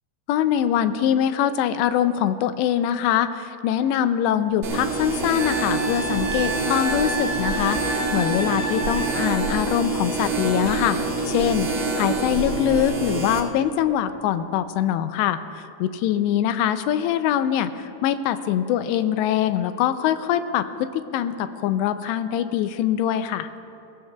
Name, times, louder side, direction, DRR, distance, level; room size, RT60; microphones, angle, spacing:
voice 1, 0.3-11.0 11.3-11.7 12.0-23.5, left 10 dB, 85° left, 11 dB, 2.7 m, -23 dB
sound 1, 4.6-13.4, right 3 dB, 45° right, 1.6 m, -26 dB
Wind instrument woodwind instrument, 5.4-9.6 12.3-12.4, right 1 dB, 5° left, 2.4 m, -30 dB
22.0 x 17.0 x 2.3 m, 2.6 s
omnidirectional pair, 5.0 m